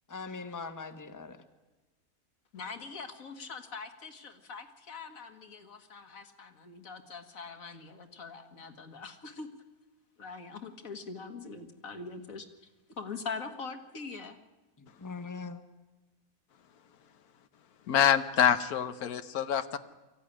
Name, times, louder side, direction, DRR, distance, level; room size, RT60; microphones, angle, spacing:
voice 1, 0.1-1.4 14.8-15.6, left 4 dB, 15° left, 8 dB, 1.1 m, -41 dB
voice 2, 2.5-9.5 10.2-12.5 13.0-14.4, left 4 dB, 65° left, 7 dB, 2.1 m, -43 dB
voice 3, 17.9-19.8, left 9 dB, 90° left, 11 dB, 1.4 m, -26 dB
23.5 x 15.0 x 9.9 m, 1.1 s
omnidirectional pair, 1.5 m